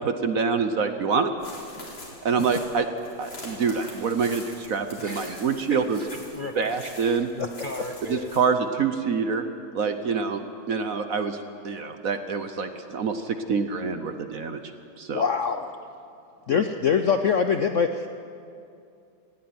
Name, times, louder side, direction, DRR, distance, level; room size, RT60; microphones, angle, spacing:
voice 1, 0.0-1.3 2.2-2.9 3.2-6.0 6.6-7.3 8.1-9.4 9.7-10.4 10.7-14.6 15.0-15.2, right 5 dB, 55° right, 8 dB, 1.1 m, -26 dB
sound 1, 1.4-8.4, left 1 dB, 65° left, 5.0 m, -44 dB
voice 2, 5.0-8.3, left 2 dB, 45° left, 4 dB, 0.6 m, -38 dB
voice 3, 15.1-15.7 16.5-18.1, left 6 dB, 90° left, 7 dB, 0.6 m, -23 dB
18.5 x 16.0 x 9.5 m, 2.5 s
omnidirectional pair, 2.2 m